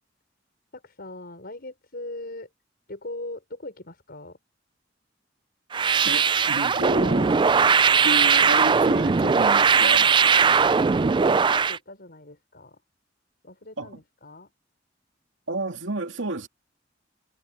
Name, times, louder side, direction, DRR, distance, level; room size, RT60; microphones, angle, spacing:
voice 1, 0.7-2.5 2.9-4.4 10.9-12.8 13.4-14.5, left 2 dB, 55° left, 5.7 m, -40 dB
sound 1, 5.7-11.8, right 5 dB, 25° right, 0.4 m, -19 dB
voice 2, 6.0-7.4 8.0-10.2 13.8-14.0 15.5-16.5, right 1 dB, 85° right, 2.6 m, -30 dB
head